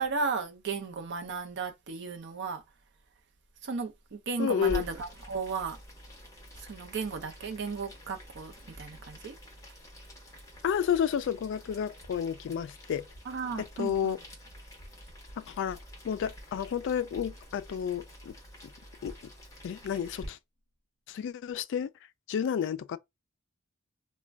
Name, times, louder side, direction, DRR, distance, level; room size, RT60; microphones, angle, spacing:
voice 1, 0.0-2.6 3.6-5.8 6.6-9.3 13.3-14.2, right 4 dB, 55° right, 0.6 m, -35 dB
voice 2, 4.4-4.8 10.6-13.1 13.8-14.2 15.4-15.8 16.0-18.3 19.0-19.1 19.6-20.4 21.1-21.9 22.3-23.0, left 8 dB, 60° left, 0.3 m, -31 dB
Boiling, 4.6-20.3, equal, 15° left, 1.0 m, -47 dB
2.4 x 2.2 x 3.2 m
head